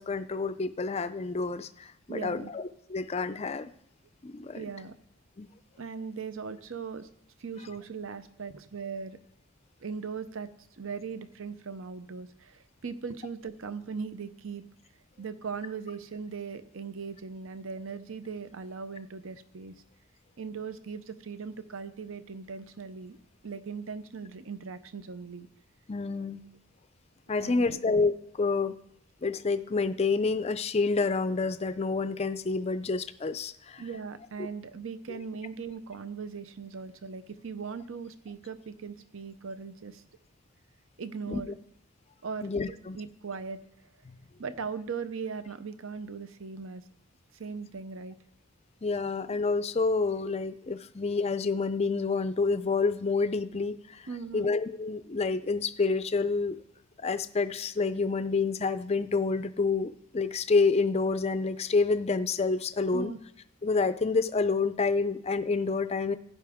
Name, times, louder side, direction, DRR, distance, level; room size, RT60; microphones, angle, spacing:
voice 1, 0.0-2.6 2.9-3.7 4.2-4.6 5.4-5.5 25.9-26.4 27.3-28.8 29.2-33.8 35.1-35.2 41.3-41.4 42.4-43.0 44.1-44.2 48.8-54.1 54.3-56.6 57.0-63.1 63.6-66.2, left 4 dB, 30° left, 12 dB, 0.4 m, -28 dB
voice 2, 2.1-2.5 4.5-4.9 5.8-7.1 7.4-9.2 9.8-14.6 15.2-19.7 20.4-23.2 23.4-25.5 27.4-27.8 33.8-40.0 41.0-41.5 42.2-43.6 44.4-46.8 47.3-48.2 54.1-54.5 62.9-63.2, right 5 dB, 65° right, 12 dB, 0.7 m, -39 dB
15.5 x 9.5 x 3.6 m, 0.76 s
head